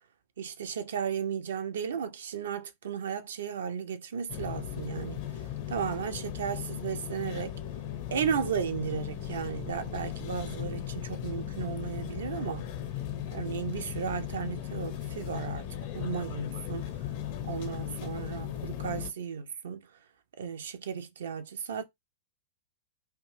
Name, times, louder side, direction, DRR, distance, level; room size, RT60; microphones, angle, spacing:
voice 1, 0.4-5.2 5.7-7.5 8.1-12.7 13.3-15.7 15.9-16.9 17.4-19.9 20.4-21.8, right 7 dB, 65° right, 0.4 m, -34 dB
sound 1, 4.3-19.1, left 11 dB, 50° left, 0.5 m, -37 dB
2.5 x 2.1 x 3.1 m
figure-of-eight pair, 100°, 0 cm